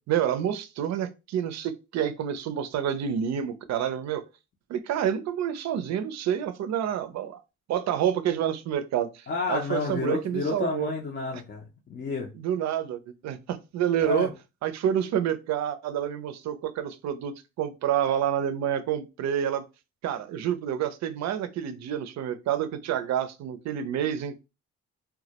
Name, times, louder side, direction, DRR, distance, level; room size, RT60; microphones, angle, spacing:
voice 1, 0.0-4.2 4.7-7.4 7.7-10.9 12.4-14.3 14.6-19.6 20.0-24.4, right 9 dB, 65° right, 0.4 m, -28 dB
voice 2, 9.3-11.6 11.9-12.3 14.0-14.3, left 4 dB, 35° left, 0.5 m, -30 dB
2.2 x 2.0 x 2.8 m
cardioid pair, 90°, 30 cm